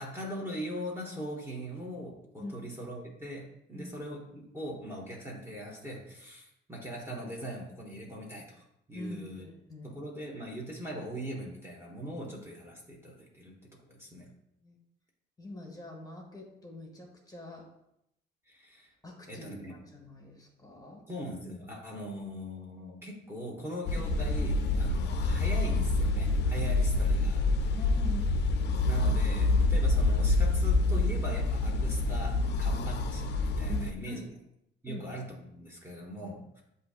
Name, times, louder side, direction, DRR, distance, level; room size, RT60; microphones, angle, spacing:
voice 1, 0.0-8.6 8.9-9.4 9.8-13.5 13.9-14.3 18.5-18.9 19.3-19.8 21.1-27.4 28.9-34.2 34.8-36.6, equal, 10° right, -2 dB, 1.0 m, -40 dB
voice 2, 2.4-2.7 3.7-3.9 8.9-10.0 14.6-14.8 15.4-17.7 19.0-21.1 27.8-28.7 33.7-34.3 34.9-35.0, left 2 dB, 20° left, 0 dB, 1.1 m, -44 dB
sound 1, 23.9-33.9, left 2 dB, 60° left, 0.4 m, -27 dB
7.8 x 2.7 x 2.4 m, 0.79 s
cardioid pair, 90°, 20 cm